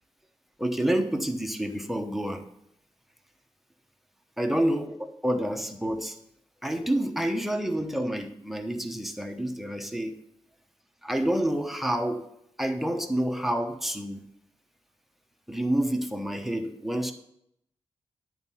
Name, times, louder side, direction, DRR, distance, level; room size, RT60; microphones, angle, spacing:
voice 1, 0.6-2.5 4.4-5.0 5.2-6.2 6.6-10.2 11.0-12.3 12.6-14.2 15.5-17.1, right 1 dB, ahead, 5 dB, 0.9 m, -28 dB
9.4 x 4.6 x 5.6 m, 0.76 s
cardioid pair, 85°, 10 cm